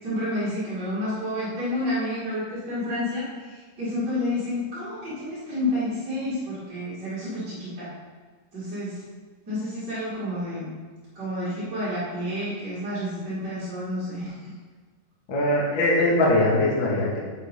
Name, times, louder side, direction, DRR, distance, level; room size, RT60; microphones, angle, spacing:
voice 1, 0.0-7.9 8.5-9.0 9.5-10.7 11.1-14.5, left 1 dB, 30° right, -12 dB, 2.4 m, -30 dB
voice 2, 15.3-17.2, left 1 dB, 40° left, -5 dB, 1.9 m, -21 dB
8.8 x 8.6 x 4.0 m, 1.5 s
omnidirectional pair, 5.3 m